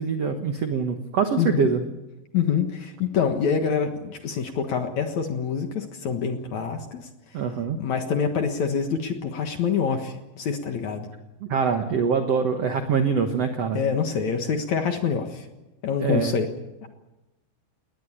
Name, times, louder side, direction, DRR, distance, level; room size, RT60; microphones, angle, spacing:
voice 1, 0.0-1.8 7.3-7.8 11.4-13.8 16.0-16.3, right 6 dB, 90° right, 6 dB, 1.4 m, -24 dB
voice 2, 1.4-1.7 2.3-7.1 7.8-11.1 13.7-15.5 15.8-16.5 16.8-16.9, left 6 dB, 60° left, 5 dB, 2.2 m, -26 dB
20.0 x 18.5 x 10.0 m, 1.0 s
omnidirectional pair, 5.0 m